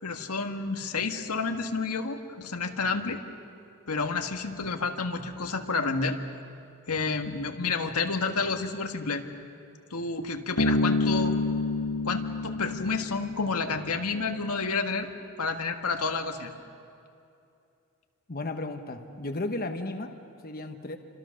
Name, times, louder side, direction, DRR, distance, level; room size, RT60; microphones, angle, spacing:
voice 1, 0.0-3.2 3.9-6.2 6.9-9.2 9.9-11.4 12.0-15.1 15.4-16.5, left 4 dB, 85° left, 5 dB, 1.6 m, -30 dB
Bass guitar, 10.6-14.1, left 2 dB, 70° left, 1.7 m, -28 dB
voice 2, 18.3-20.2 20.4-21.0, left 2 dB, 45° left, 6 dB, 1.2 m, -34 dB
29.5 x 26.0 x 6.5 m, 2.6 s
head